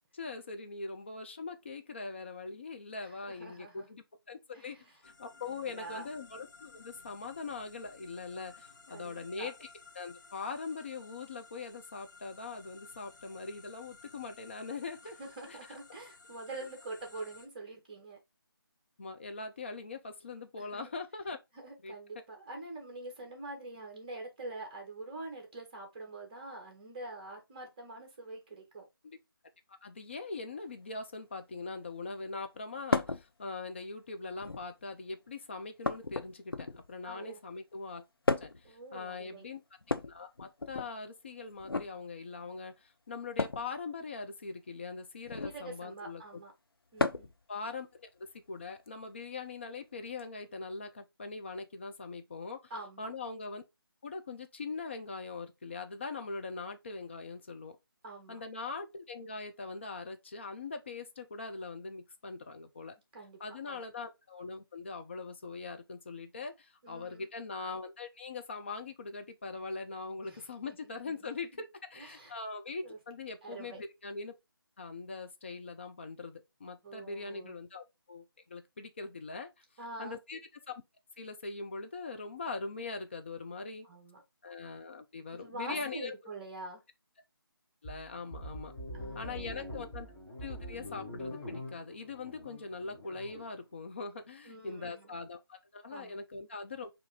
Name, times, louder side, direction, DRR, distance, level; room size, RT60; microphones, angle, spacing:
voice 1, 0.1-4.8 5.0-9.5 9.9-15.2 15.5-15.6 19.0-21.4 21.8-22.0 29.0-29.2 29.7-38.0 38.4-39.6 40.1-46.2 47.5-52.7 53.0-53.6 54.0-57.8 58.3-62.9 63.4-74.4 74.8-79.5 80.0-80.4 80.7-80.8 81.2-83.9 84.4-86.1 87.8-88.7 89.1-90.1 90.4-96.9, left 4 dB, 30° left, 0.5 m, -42 dB
voice 2, 3.0-3.9 4.5-4.8 5.5-6.1 8.9-9.5 15.2-18.2 20.6-20.9 21.5-28.9 37.0-37.4 38.6-39.5 45.4-46.5 46.9-47.3 52.7-53.1 58.0-58.4 63.1-63.4 63.6-63.8 66.8-67.3 70.2-70.5 70.8-71.6 71.9-72.3 72.8-73.0 73.4-73.8 76.8-77.6 79.8-80.2 83.8-84.2 85.3-86.8 88.9-89.4 94.4-95.1 95.9-96.2, right 2 dB, 20° right, 1.2 m, -45 dB
sound 1, 5.0-17.5, left 4 dB, 50° left, 1.0 m, -56 dB
sound 2, 32.9-33.2 34.3-34.8 35.8-36.9 38.3-38.7 39.8-40.9 41.6-41.9 43.4-43.7 45.2-45.6 47.0-47.4 48.9-49.0 50.2-50.3, left 3 dB, 75° left, 0.6 m, -33 dB
sound 3, 87.8-93.5, left 1 dB, 10° left, 0.9 m, -44 dB
4.7 x 2.6 x 3.9 m
figure-of-eight pair, 155°, 12 cm